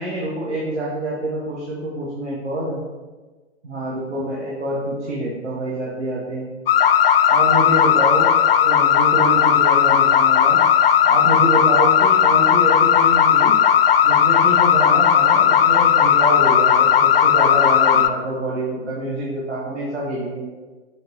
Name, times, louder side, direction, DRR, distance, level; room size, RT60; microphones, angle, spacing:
voice 1, 0.0-2.8 3.6-6.5 7.3-8.3 8.6-10.6 11.0-13.5 14.0-20.5, right 1 dB, 80° right, -5 dB, 1.6 m, -26 dB
sound 1, 6.7-18.1, left 9 dB, 55° left, 0.5 m, -15 dB
6.6 x 6.4 x 3.0 m, 1.3 s
figure-of-eight pair, 105°, 34 cm